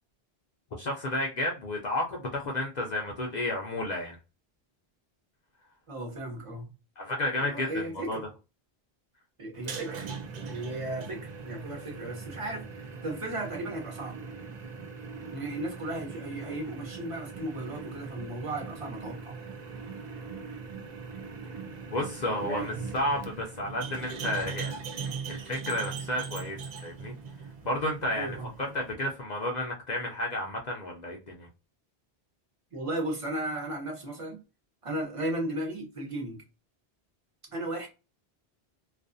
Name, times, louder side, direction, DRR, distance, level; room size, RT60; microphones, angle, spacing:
voice 1, 0.8-4.2 7.0-8.2 21.9-24.8 25.3-27.1 27.7-31.5, left 1 dB, 55° left, 0.5 m, -32 dB
voice 2, 5.9-6.7 7.4-8.2 9.4-10.0 10.4-14.2 15.3-19.4 22.4-22.7 28.1-28.5 32.7-34.4 34.8-36.4 37.5-37.9, right 1 dB, 35° right, 0.8 m, -35 dB
sound 1, 9.5-28.9, right 5 dB, 55° right, 0.5 m, -40 dB
2.4 x 2.3 x 2.4 m
omnidirectional pair, 1.0 m